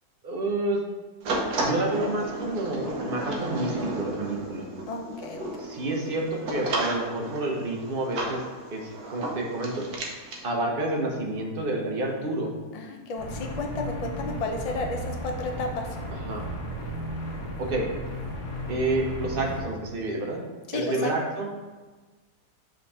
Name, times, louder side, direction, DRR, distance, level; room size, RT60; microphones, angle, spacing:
voice 1, 0.2-0.8 1.6-4.7 5.6-8.4 8.7-9.9 10.4-12.5 16.1-16.4 17.6-17.9 18.7-20.4 20.7-21.5, right 2 dB, 40° right, 0 dB, 0.9 m, -29 dB
sound 1, 1.2-10.4, right 2 dB, 75° right, 1.4 m, -33 dB
voice 2, 4.9-5.5 12.7-15.9 20.7-21.1, left 3 dB, 70° left, 2 dB, 0.3 m, -32 dB
sound 2, 13.2-19.6, equal, 90° left, 1.8 m, -35 dB
5.1 x 3.6 x 5.5 m, 1.3 s
omnidirectional pair, 1.7 m